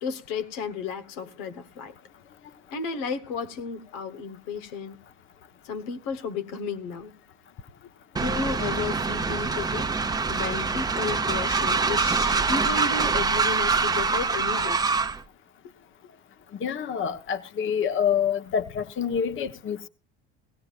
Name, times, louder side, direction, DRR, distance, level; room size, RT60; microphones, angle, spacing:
voice 1, 0.0-1.9 2.7-5.0 5.6-7.1 8.2-9.9 10.3-14.8, left 5 dB, 85° left, 1.2 m, -33 dB
Train, 8.2-15.2, right 4 dB, 15° right, 0.8 m, -25 dB
voice 2, 16.6-19.9, left 7 dB, 45° left, 1.1 m, -27 dB
18.5 x 16.5 x 2.4 m
supercardioid pair, 110°, 29 cm